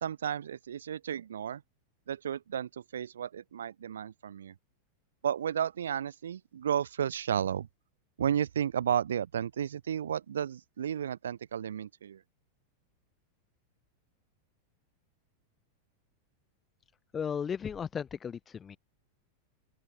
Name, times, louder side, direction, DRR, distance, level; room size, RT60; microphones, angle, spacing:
voice 1, 0.0-1.6 2.1-4.5 5.2-7.7 8.2-12.2, right 9 dB, 65° right, 1.1 m, -33 dB
voice 2, 17.1-18.8, left 7 dB, 20° left, 1.1 m, -35 dB
open air
figure-of-eight pair, 90°, 0 cm